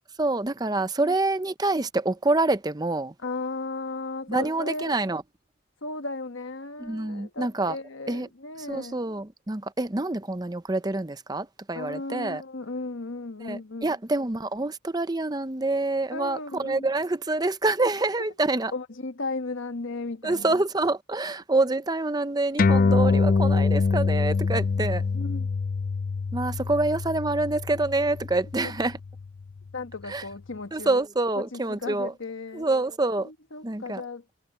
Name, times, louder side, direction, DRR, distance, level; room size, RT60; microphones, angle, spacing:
voice 1, 0.2-3.1 4.3-5.2 6.8-7.8 8.1-8.3 8.7-12.4 13.4-18.7 20.2-25.0 26.3-29.0 30.1-30.2 30.7-32.1 32.5-33.3 33.6-34.0, right 2 dB, 20° right, 0.7 m, -26 dB
voice 2, 3.2-4.9 5.8-9.0 11.7-13.9 16.1-16.9 18.7-20.5 25.1-25.5 29.7-31.0 31.3-32.7 33.2-34.2, left 3 dB, 70° left, 1.4 m, -35 dB
sound 1, 22.6-29.4, left 4 dB, 40° left, 0.4 m, -25 dB
head